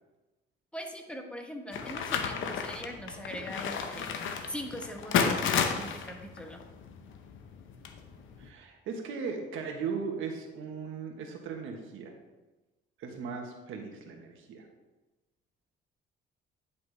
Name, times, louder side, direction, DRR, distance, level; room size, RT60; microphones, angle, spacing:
voice 1, 0.7-4.1 4.5-6.6, equal, 5° left, 3 dB, 1.2 m, -41 dB
sound 1, 1.7-8.5, left 6 dB, 80° left, 0.8 m, -32 dB
voice 2, 8.4-12.1 13.0-14.6, right 5 dB, 85° right, 3 dB, 1.3 m, -38 dB
9.9 x 5.7 x 3.4 m, 1.1 s
cardioid pair, 90°, 20 cm